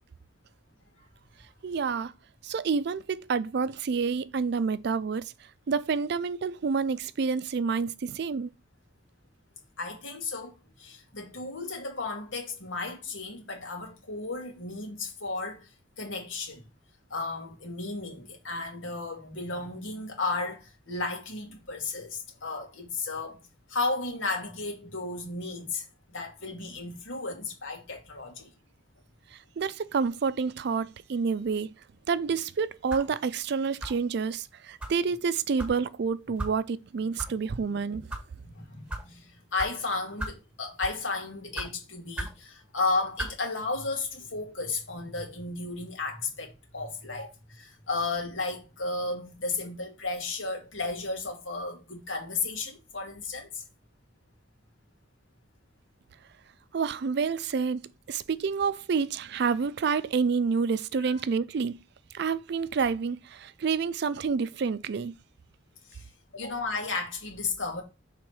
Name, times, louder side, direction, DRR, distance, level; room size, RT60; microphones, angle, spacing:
voice 1, 1.6-2.1 2.4-5.3 5.7-8.5 29.3-31.7 32.1-38.0 56.7-61.8 62.1-65.1, right 5 dB, 60° right, 0.4 m, -28 dB
voice 2, 9.8-15.7 16.0-16.7 17.1-23.4 23.7-28.5 38.4-53.6 61.0-61.2 65.9-66.1 66.3-67.8, left 3 dB, 85° left, 2.1 m, -34 dB
sound 1, 32.9-33.1 33.8-34.1 34.8-35.0 35.6-35.8 36.4-36.5 37.2-37.3 37.9-38.2 38.9-39.0 39.6-39.7 40.2-40.4 40.8-41.0 41.5-41.7 42.1-42.4 43.2-43.4, right 1 dB, 5° right, 1.4 m, -35 dB
6.2 x 3.7 x 4.7 m
head